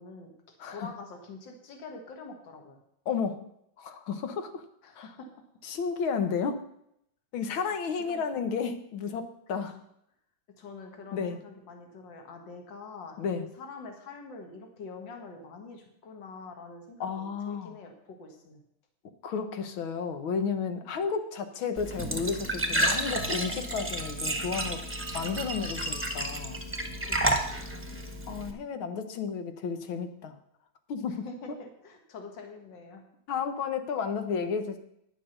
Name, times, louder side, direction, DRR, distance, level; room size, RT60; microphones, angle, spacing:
voice 1, 0.0-2.8 4.8-5.3 7.7-7.8 8.1-8.6 10.6-18.6 20.8-21.0 27.0-27.6 31.1-33.0, left 4 dB, 65° left, 3 dB, 2.3 m, -45 dB
voice 2, 3.1-3.4 3.8-4.6 5.0-5.1 5.6-6.6 7.3-9.8 11.1-11.4 13.2-13.5 17.0-17.7 19.2-24.8 25.1-26.6 28.3-30.4 30.9-31.3 33.3-34.8, left 6 dB, 85° left, 8 dB, 1.9 m, -32 dB
Glass / Trickle dribble / Fill (with liquid), 21.8-28.5, right 1 dB, 10° right, 0.8 m, -31 dB
10.5 x 7.6 x 6.6 m, 0.74 s
omnidirectional pair, 2.2 m